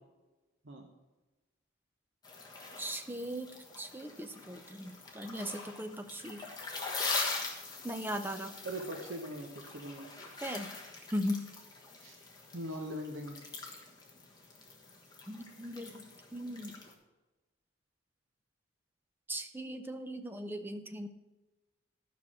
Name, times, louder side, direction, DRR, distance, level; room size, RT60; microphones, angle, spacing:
sound 1, 2.2-16.9, left 3 dB, 20° left, 1.3 m, -42 dB
voice 1, 2.8-6.4 7.8-8.6 10.4-10.7 11.1-11.5 15.3-16.0 16.3-16.7 19.3-21.1, equal, 10° right, 7 dB, 0.6 m, -38 dB
voice 2, 8.6-10.1 12.0-12.2 12.5-13.4, right 1 dB, 70° right, 2 dB, 1.0 m, -41 dB
12.0 x 5.8 x 6.1 m, 1.2 s
head